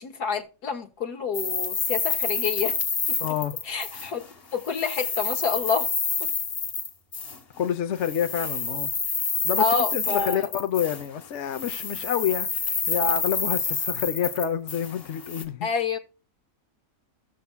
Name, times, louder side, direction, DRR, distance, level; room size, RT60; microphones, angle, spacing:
voice 1, 0.0-2.8 3.1-3.2 3.7-4.2 4.5-5.9 6.2-6.3 9.6-10.5 15.6-16.0, left 5 dB, 75° left, 1.9 m, -28 dB
sound 1, 1.3-4.3 4.6-7.4 8.0-11.2 11.5-15.4, left 5 dB, 40° left, 1.3 m, -28 dB
voice 2, 3.2-3.6 7.6-8.9 9.4-9.7 9.9-12.5 12.9-15.7, left 8 dB, 55° left, 0.9 m, -28 dB
15.5 x 6.9 x 2.2 m
omnidirectional pair, 1.7 m